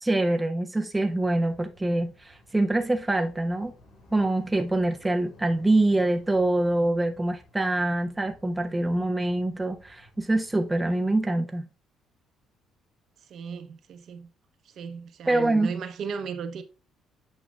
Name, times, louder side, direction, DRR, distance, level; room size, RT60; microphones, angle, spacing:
voice 1, 0.0-3.7 4.1-11.7 15.3-15.7, right 2 dB, 10° right, 0.4 m, -25 dB
sound 1, 0.9-11.2, left 1 dB, 80° left, 3.9 m, -56 dB
voice 2, 13.2-14.3 14.6-16.6, right 6 dB, 55° right, 0.6 m, -36 dB
8.4 x 5.2 x 2.3 m
cardioid pair, 130°, 0 cm